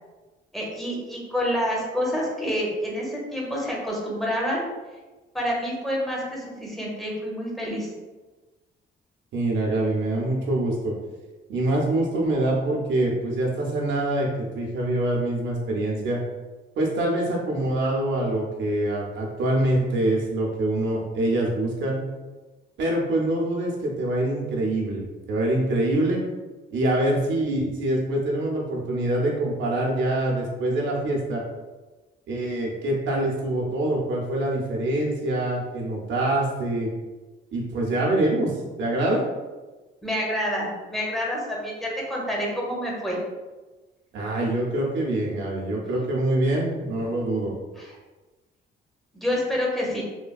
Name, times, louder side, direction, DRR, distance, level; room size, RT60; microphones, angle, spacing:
voice 1, 0.5-4.7 5.3-7.9 40.0-43.2 47.8-48.0 49.1-50.0, equal, ahead, -4 dB, 0.8 m, -28 dB
voice 2, 9.3-10.9 11.5-16.2 16.8-22.0 22.8-26.2 26.7-31.4 32.3-36.9 37.5-39.2 44.1-47.5, right 1 dB, 70° right, -2 dB, 0.6 m, -25 dB
3.2 x 2.2 x 2.3 m, 1.2 s
cardioid pair, 90°, 20 cm